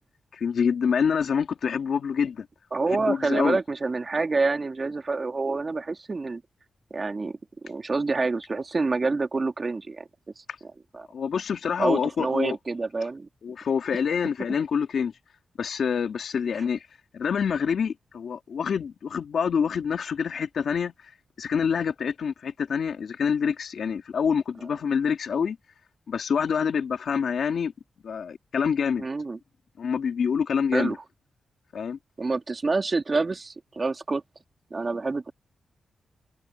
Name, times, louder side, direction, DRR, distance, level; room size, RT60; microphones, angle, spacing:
voice 1, 0.3-2.5 2.9-3.6 11.1-12.6 13.4-15.1 15.6-16.8 17.1-20.9 21.4-25.6 26.1-27.7 28.0-29.1 29.8-31.0 31.7-32.0, left 6 dB, 70° left, 2.1 m, -26 dB
voice 2, 2.7-6.4 6.9-10.1 10.4-10.5 10.9-11.1 11.8-13.3 29.0-29.4 30.7-31.0 32.2-34.2 34.7-35.3, right 3 dB, 30° right, 2.4 m, -27 dB
wide cardioid pair, 120°, 0 cm